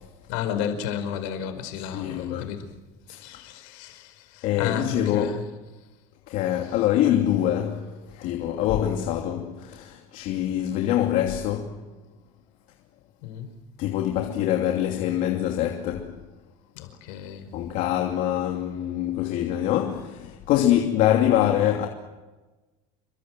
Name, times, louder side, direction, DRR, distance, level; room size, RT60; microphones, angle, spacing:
voice 1, 0.3-2.7 3.1-5.4 13.2-13.5 16.7-17.5, left 8 dB, 75° left, 5.0 m, -32 dB
voice 2, 1.8-2.5 3.1-3.2 4.4-5.4 6.3-11.8 13.8-16.1 17.5-21.9, left 11 dB, 55° left, 2.9 m, -24 dB
28.5 x 24.0 x 7.8 m
cardioid pair, 155°, 16 cm